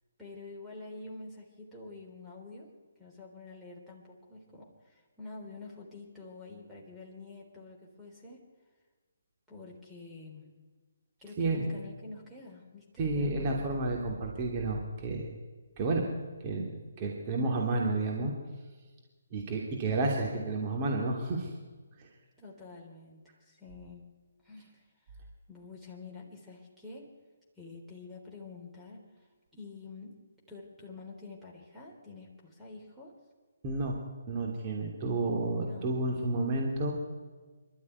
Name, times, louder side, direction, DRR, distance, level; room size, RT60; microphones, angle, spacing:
voice 1, 0.2-8.4 9.5-10.5 11.2-13.6 22.4-24.0 24.4-25.2 25.5-27.1 27.6-33.2 35.6-36.4, left 3 dB, ahead, -5 dB, 3.7 m, -48 dB
voice 2, 11.4-11.7 13.0-15.3 15.8-16.0 16.4-18.3 19.3-21.5 22.0-22.1 33.6-34.0 34.3-36.9, right 2 dB, 30° right, -1 dB, 2.9 m, -31 dB
24.5 x 12.5 x 9.7 m, 1.4 s
figure-of-eight pair, 145°, 0 cm